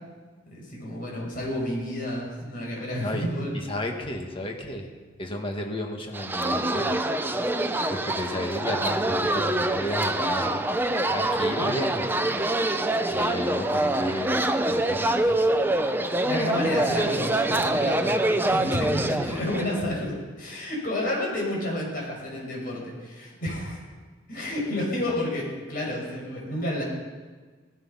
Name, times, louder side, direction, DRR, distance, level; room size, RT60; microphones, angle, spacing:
voice 1, 0.5-3.5 11.6-11.8 16.2-23.8 24.3-26.8, left 1 dB, 50° left, -3 dB, 5.9 m, -30 dB
voice 2, 3.5-4.9 5.2-7.0 7.9-10.6 11.1-12.4 13.1-14.4 14.7-15.4 19.2-19.4, left 1 dB, 30° left, 2 dB, 1.8 m, -33 dB
sound 1, 6.1-19.8, right 1 dB, 10° right, 0.7 m, -25 dB
18.5 x 11.5 x 5.8 m, 1.4 s
head